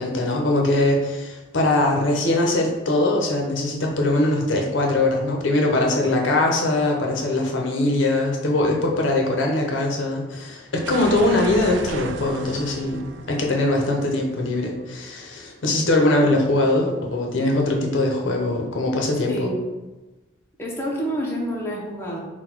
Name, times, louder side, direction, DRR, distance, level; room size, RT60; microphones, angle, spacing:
voice 1, 0.0-19.5, left 2 dB, 80° left, 1 dB, 0.7 m, -21 dB
sound 1, 10.8-15.6, right 5 dB, 70° right, 0.3 m, -35 dB
voice 2, 16.2-16.6 19.3-19.6 20.6-22.2, equal, 10° left, -4 dB, 0.6 m, -28 dB
3.9 x 2.2 x 4.3 m, 1.1 s
head